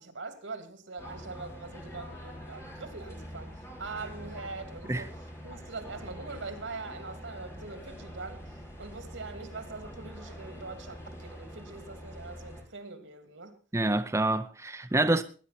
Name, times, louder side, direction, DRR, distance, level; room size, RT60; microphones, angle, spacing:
voice 1, 0.0-3.5 3.8-5.1 5.4-8.4 8.8-13.5, right 3 dB, 85° right, 2.7 m, -42 dB
sound 1, 1.0-12.6, equal, 15° left, 3.9 m, -45 dB
voice 2, 13.7-15.2, right 2 dB, 15° right, 0.6 m, -27 dB
20.0 x 10.0 x 4.2 m
head